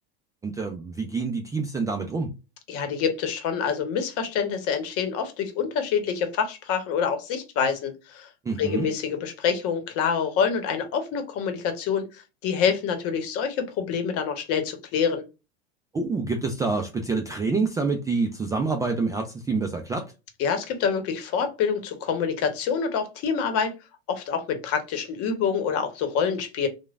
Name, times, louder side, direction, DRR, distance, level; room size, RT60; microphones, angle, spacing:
voice 1, 0.4-2.3 8.5-8.9 15.9-20.1, right 4 dB, 10° right, 0.3 m, -27 dB
voice 2, 2.7-8.3 8.6-12.0 12.4-15.2 20.4-23.7 24.1-26.7, left 6 dB, 50° left, 0.9 m, -26 dB
3.1 x 2.2 x 2.3 m
hypercardioid pair, 100°, 31 cm